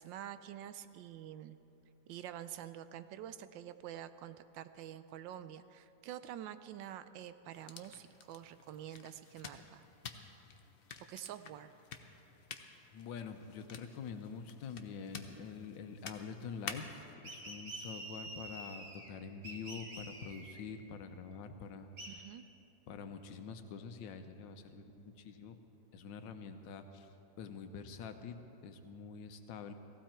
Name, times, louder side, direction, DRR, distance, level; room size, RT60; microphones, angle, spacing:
voice 1, 0.0-1.6 2.1-9.9 11.1-11.7 22.1-22.5, right 11 dB, 85° right, 12 dB, 1.3 m, -47 dB
sound 1, 7.5-17.1, left 6 dB, 65° left, 0.5 m, -51 dB
voice 2, 12.9-21.9 22.9-25.6 25.9-27.1 27.4-29.7, left 5 dB, 85° left, 8 dB, 1.5 m, -46 dB
sound 2, 17.2-19.1 19.4-20.6 22.0-22.1, right 1 dB, 45° right, 2.2 m, -47 dB
16.5 x 15.5 x 4.4 m, 3.0 s
omnidirectional pair, 2.0 m